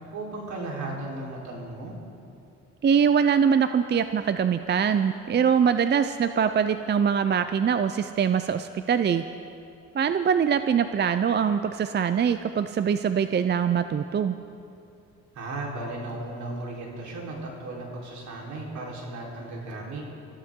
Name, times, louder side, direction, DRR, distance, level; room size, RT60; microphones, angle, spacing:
voice 1, 0.1-1.9 15.3-20.0, right 2 dB, 70° right, -3 dB, 4.1 m, -35 dB
voice 2, 2.8-9.2 9.9-14.4, right 7 dB, 35° right, 10 dB, 0.5 m, -23 dB
25.0 x 15.0 x 3.8 m, 2.6 s
cardioid pair, 90°, 30 cm